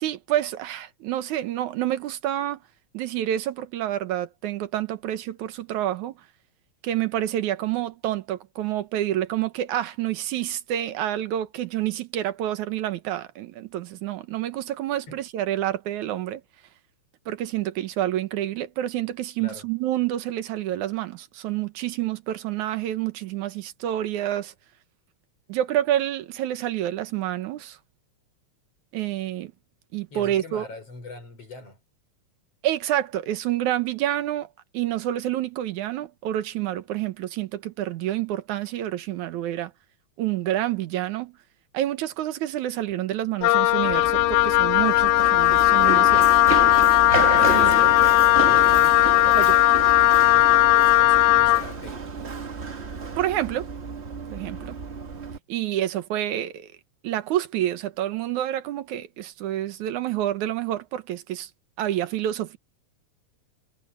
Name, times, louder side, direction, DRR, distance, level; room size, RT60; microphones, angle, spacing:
voice 1, 0.0-2.6 2.9-6.1 6.8-16.4 17.3-24.5 25.5-27.8 28.9-29.5 29.9-30.7 32.6-34.5 34.7-39.7 40.2-41.4 41.7-46.4 47.4-47.8 49.3-49.5 53.2-53.7 54.3-54.8 55.5-56.7 57.0-61.5 61.8-62.6, right 12 dB, 85° right, 2.5 m, -28 dB
voice 2, 30.1-31.8 47.6-52.1, left 3 dB, 55° left, 6.5 m, -42 dB
Wind instrument woodwind instrument, 43.4-51.7, left 17 dB, 85° left, 2.0 m, -17 dB
Run, 43.8-55.4, right 4 dB, 55° right, 0.7 m, -31 dB
omnidirectional pair, 3.4 m